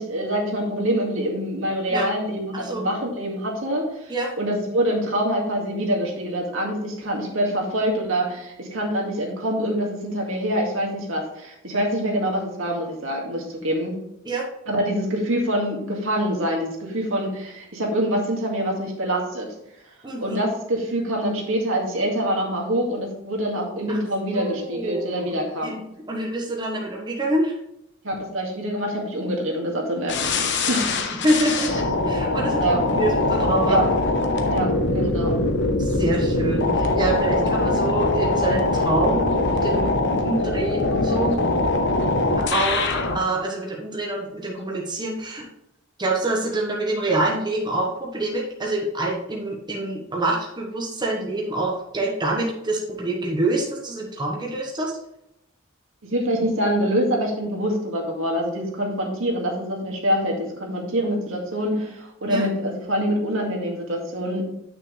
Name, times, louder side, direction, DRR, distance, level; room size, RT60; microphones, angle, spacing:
voice 1, 0.0-14.0 14.7-19.5 20.2-25.8 28.0-31.1 32.6-32.8 33.7-33.9 34.5-35.4 56.0-64.4, equal, 70° right, -1 dB, 2.1 m, -25 dB
voice 2, 2.5-2.8 4.1-4.3 14.2-14.4 20.0-20.4 23.9-24.0 24.3-25.2 25.6-27.6 31.2-33.8 35.8-39.9 40.2-41.4 42.5-45.4 46.0-54.9 62.3-62.4, right 1 dB, 20° right, -2 dB, 1.2 m, -26 dB
sound 1, 30.1-43.2, left 2 dB, 60° left, 0.9 m, -22 dB
9.4 x 6.1 x 3.3 m, 0.83 s
head